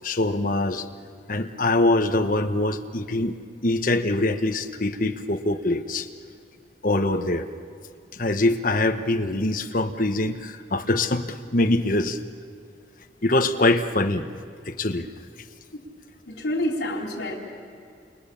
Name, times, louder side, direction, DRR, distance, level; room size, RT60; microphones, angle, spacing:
voice 1, 0.0-0.9 1.3-3.3 3.6-6.1 6.8-7.5 8.1-12.2 13.2-14.3 14.6-15.1, left 2 dB, 50° left, 5 dB, 1.3 m, -23 dB
voice 2, 16.3-17.4, left 1 dB, 75° left, -2 dB, 4.1 m, -28 dB
29.5 x 24.5 x 7.2 m, 2.4 s
head